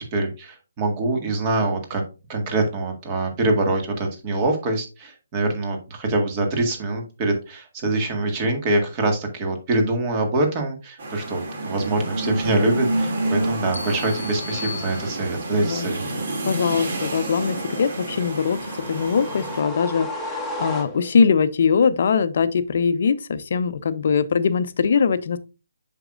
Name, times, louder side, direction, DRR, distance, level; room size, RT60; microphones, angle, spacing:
voice 1, 0.0-2.0 2.3-16.0, right 2 dB, 25° right, 4 dB, 1.9 m, -24 dB
sound 1, 11.0-19.6, right 2 dB, 55° right, 2.5 m, -29 dB
sound 2, 13.7-15.6, left 6 dB, 75° left, 1.0 m, -37 dB
voice 2, 16.4-25.4, left 6 dB, 50° left, 13 dB, 0.7 m, -21 dB
sound 3, 18.2-21.3, left 1 dB, ahead, 1.3 m, -33 dB
7.9 x 6.2 x 2.5 m, 0.30 s
figure-of-eight pair, 145°, 0 cm